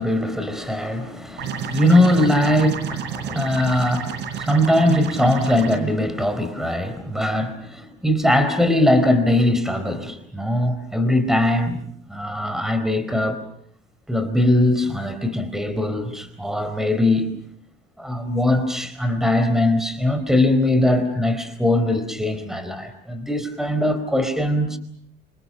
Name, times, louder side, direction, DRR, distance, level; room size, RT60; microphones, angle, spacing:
voice 1, 0.0-11.8 12.1-13.4 14.1-17.3 18.0-24.8, left 1 dB, ahead, 10 dB, 4.4 m, -21 dB
sound 1, 1.4-5.8, right 8 dB, 65° right, 4.5 m, -30 dB
28.5 x 26.5 x 6.5 m, 0.63 s
supercardioid pair, 100°, 19 cm